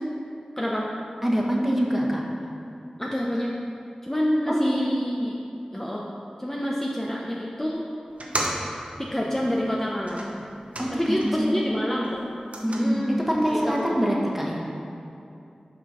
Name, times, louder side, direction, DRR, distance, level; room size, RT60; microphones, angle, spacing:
voice 1, 0.6-0.9 3.0-3.5 4.0-5.4 5.7-6.1 6.4-7.8 9.0-10.3 10.9-12.2 12.7-13.1 13.5-13.9, equal, 15° left, -4 dB, 0.7 m, -27 dB
voice 2, 1.2-2.2 4.5-4.8 10.8-11.6 12.6-14.7, equal, 10° right, -2 dB, 1.3 m, -25 dB
sound 1, 8.1-11.5 11.9-13.9, right 1 dB, 60° right, 0.9 m, -36 dB
6.3 x 5.0 x 5.6 m, 2.6 s
wide cardioid pair, 45°, 2 cm